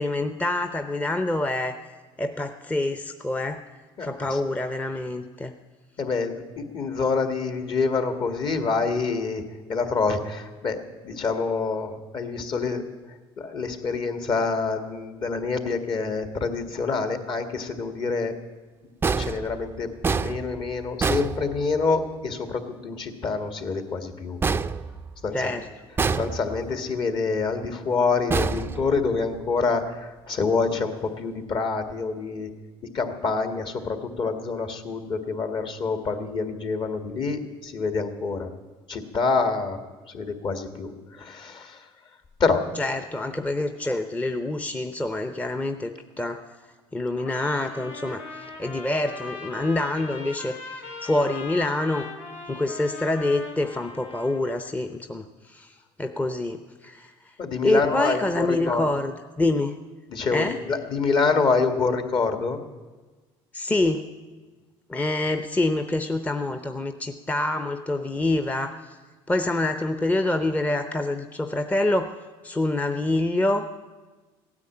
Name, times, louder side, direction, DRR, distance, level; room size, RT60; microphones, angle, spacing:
voice 1, 0.0-1.8 2.2-3.6 4.0-5.5 25.3-25.7 42.8-46.5 46.9-52.1 52.5-57.1 57.6-59.8 60.3-60.6 63.5-64.1 64.9-68.8 69.3-72.1 72.4-73.7, left 2 dB, 15° left, 8 dB, 0.7 m, -26 dB
voice 2, 4.0-4.4 6.0-9.4 9.7-10.8 11.0-12.8 13.4-18.3 19.2-24.4 25.2-25.5 26.2-32.5 32.9-38.5 38.9-39.8 40.1-40.9 41.2-41.8 42.4-42.6 57.4-58.8 60.1-62.6, left 4 dB, 45° left, 7 dB, 1.8 m, -26 dB
sound 1, 19.0-22.1 24.4-25.5 26.0-26.8 28.3-29.4, right 4 dB, 20° right, 0.4 m, -27 dB
Trumpet, 47.2-54.6, left 3 dB, 90° left, 2.6 m, -40 dB
16.0 x 9.7 x 8.7 m, 1.3 s
cardioid pair, 105°, 11 cm